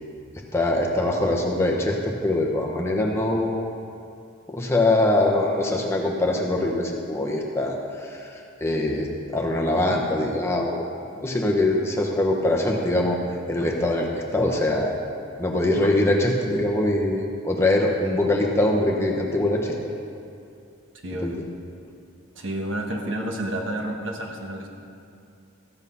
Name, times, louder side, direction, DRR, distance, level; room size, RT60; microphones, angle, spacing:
voice 1, 0.5-3.7 4.5-13.2 13.5-15.0 15.4-19.7 21.2-21.3, left 1 dB, 10° left, -1 dB, 1.0 m, -23 dB
voice 2, 21.0-21.4 22.4-24.7, right 1 dB, 65° right, 1 dB, 1.4 m, -30 dB
14.0 x 8.1 x 5.5 m, 2.5 s
head